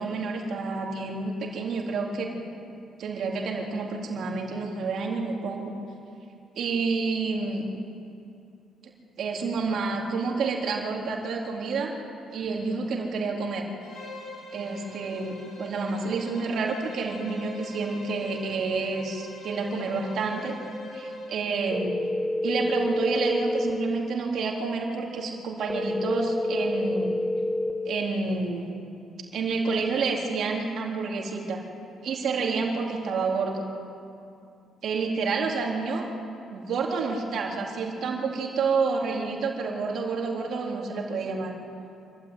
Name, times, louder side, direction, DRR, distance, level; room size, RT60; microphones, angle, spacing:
voice 1, 0.0-2.3 3.0-5.7 6.5-7.7 9.2-11.9 12.3-13.7 14.5-20.6 20.9-21.9 22.4-27.1 27.9-28.7 29.3-31.6 32.0-33.7 34.8-36.1 36.5-41.5, right 4 dB, 65° right, 0 dB, 3.8 m, -29 dB
Bowed string instrument, 13.8-21.5, left 1 dB, 50° left, 7.3 m, -43 dB
sound 1, 21.7-23.7 25.7-27.7, left 2 dB, 20° left, 2.3 m, -27 dB
26.5 x 13.0 x 9.3 m, 2.6 s
cardioid pair, 100°, 0 cm